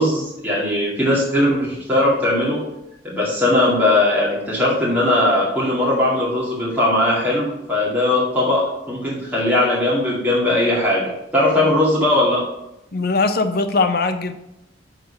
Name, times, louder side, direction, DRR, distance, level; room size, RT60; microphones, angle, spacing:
voice 1, 0.0-2.6 3.0-12.4, left 1 dB, 10° right, -6 dB, 2.1 m, -19 dB
voice 2, 12.9-14.3, left 3 dB, 60° left, 8 dB, 0.7 m, -20 dB
7.8 x 5.0 x 5.6 m, 0.89 s
head